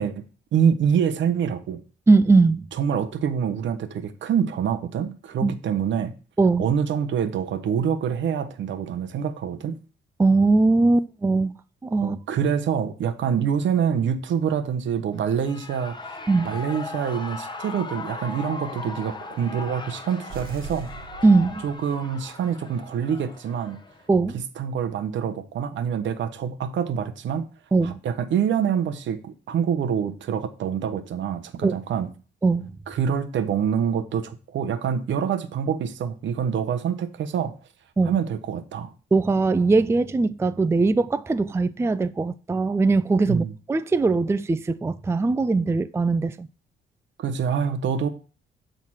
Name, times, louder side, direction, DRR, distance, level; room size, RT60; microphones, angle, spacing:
voice 1, 0.0-1.8 2.7-6.1 6.6-9.8 12.0-16.2 16.4-20.9 21.6-23.8 24.6-27.5 27.8-32.1 32.9-37.5 38.0-38.9 43.3-43.5 47.2-48.1, right 7 dB, 70° right, 1.2 m, -26 dB
voice 2, 2.1-2.7 5.4-5.5 6.4-6.7 10.2-11.5 11.8-12.2 16.3-16.6 21.2-21.6 24.1-24.4 27.7-28.0 31.6-31.8 32.4-32.7 38.0-38.2 39.1-46.5, right 3 dB, 15° right, 0.4 m, -20 dB
Shout / Cheering, 15.1-24.1, left 3 dB, 20° left, 1.4 m, -38 dB
sound 1, 20.3-22.2, right 5 dB, 45° right, 1.9 m, -40 dB
8.7 x 3.9 x 6.2 m
cardioid pair, 90°, 20 cm